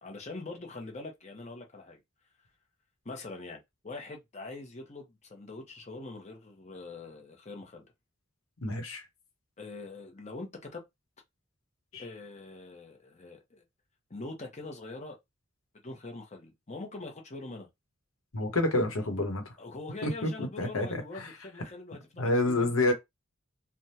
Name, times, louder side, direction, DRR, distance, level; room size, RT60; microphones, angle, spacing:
voice 1, 0.0-2.0 3.0-7.8 9.6-10.8 12.0-13.6 14.1-15.2 15.8-17.7 19.6-22.9, left 3 dB, 35° left, 0.9 m, -43 dB
voice 2, 8.6-9.1 11.9-12.0 18.3-19.5 20.0-21.3 22.2-22.9, left 2 dB, 85° left, 1.0 m, -29 dB
3.4 x 2.2 x 2.8 m
head